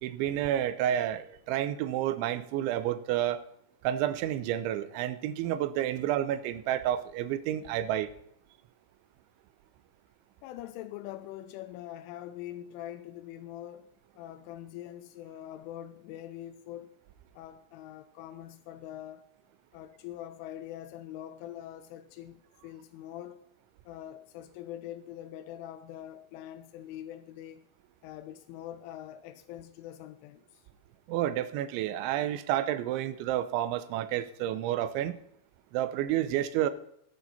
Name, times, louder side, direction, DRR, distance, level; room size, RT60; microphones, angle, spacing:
voice 1, 0.0-3.4 3.8-8.1 31.1-35.2 35.7-36.7, right 12 dB, 80° right, 3.0 m, -30 dB
voice 2, 10.4-16.9 17.3-19.3 19.7-23.4 23.9-27.6 28.0-30.6, left 12 dB, 85° left, 3.2 m, -43 dB
18.5 x 8.9 x 4.2 m
omnidirectional pair, 5.5 m